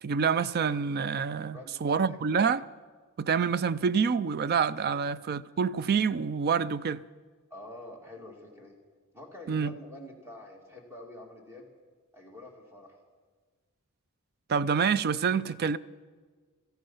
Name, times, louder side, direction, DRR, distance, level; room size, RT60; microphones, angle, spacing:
voice 1, 0.0-2.6 3.2-7.0 9.5-9.7 14.5-15.8, right 6 dB, 45° right, 0.4 m, -27 dB
voice 2, 1.5-2.4 4.9-5.0 7.5-8.8 9.1-11.7 12.1-13.0, left 1 dB, 10° right, 2.3 m, -47 dB
16.0 x 14.5 x 5.6 m
head